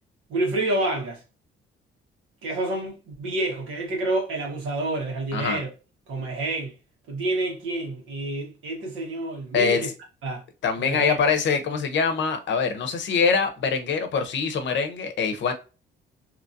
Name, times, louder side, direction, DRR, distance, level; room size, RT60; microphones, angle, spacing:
voice 1, 0.3-1.2 2.4-5.7 6.1-6.7 7.1-9.9 10.2-10.4 10.8-11.2, right 2 dB, 85° right, 1.4 m, -28 dB
voice 2, 5.3-5.6 9.5-9.9 10.6-15.5, left 5 dB, 65° left, 0.7 m, -24 dB
2.9 x 2.6 x 2.6 m
cardioid pair, 90°, 20 cm